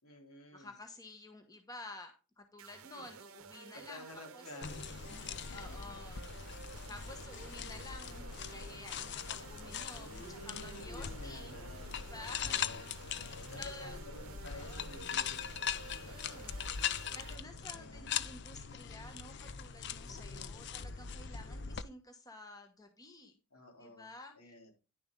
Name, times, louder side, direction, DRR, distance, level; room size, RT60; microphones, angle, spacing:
voice 1, 0.0-0.7 2.9-3.0 3.7-4.7 5.2-5.9 9.9-16.7 17.7-18.1 20.0-20.6 23.5-24.1 24.3-24.7, left 2 dB, 75° left, 2 dB, 3.5 m, -53 dB
voice 2, 0.5-4.0 4.3-4.5 5.1-6.2 6.5-11.6 11.9-12.7 13.6-14.0 14.5-14.9 15.7-16.6 17.1-23.3 23.8-24.7, left 2 dB, 15° left, 5 dB, 1.1 m, -52 dB
sound 1, 2.6-17.4, right 6 dB, 70° right, 0.7 m, -52 dB
sound 2, 4.6-21.8, left 7 dB, 50° left, 0.6 m, -41 dB
10.5 x 6.9 x 3.8 m, 0.31 s
head